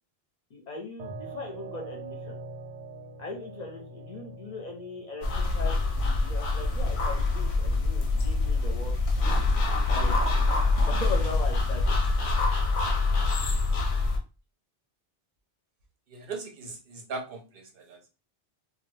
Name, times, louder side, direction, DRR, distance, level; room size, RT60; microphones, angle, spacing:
voice 1, 0.5-2.4 3.2-8.9 9.9-12.0, left 3 dB, 50° left, 1 dB, 0.6 m, -39 dB
sound 1, 1.0-14.0, right 2 dB, 85° right, 0.9 m, -47 dB
sound 2, 5.2-14.2, left 3 dB, 90° left, 0.9 m, -25 dB
voice 2, 16.1-18.1, right 4 dB, 65° right, 3 dB, 0.7 m, -39 dB
2.2 x 2.2 x 3.1 m, 0.31 s
omnidirectional pair, 1.1 m